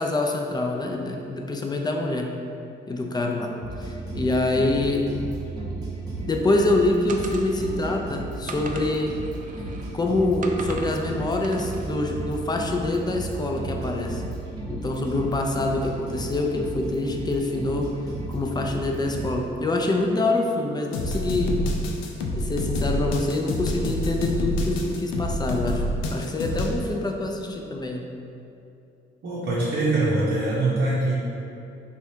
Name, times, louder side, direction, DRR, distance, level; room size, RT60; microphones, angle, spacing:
voice 1, 0.0-2.4 2.9-3.5 3.8-5.1 6.3-9.1 9.9-14.2 14.7-17.9 18.3-21.6 22.3-25.8 26.1-28.0, left 2 dB, 20° left, 1 dB, 0.4 m, -25 dB
sound 1, 3.6-19.3, right 2 dB, 20° right, 0.9 m, -34 dB
sound 2, 7.1-7.9 8.5-9.9 10.4-11.0 11.4-11.9, right 4 dB, 40° right, 0.4 m, -39 dB
sound 3, 20.9-26.8, left 1 dB, 90° left, 0.4 m, -27 dB
voice 2, 29.2-31.1, right 2 dB, 70° right, -7 dB, 0.8 m, -23 dB
3.3 x 2.4 x 4.3 m, 2.7 s
cardioid pair, 90°, 20 cm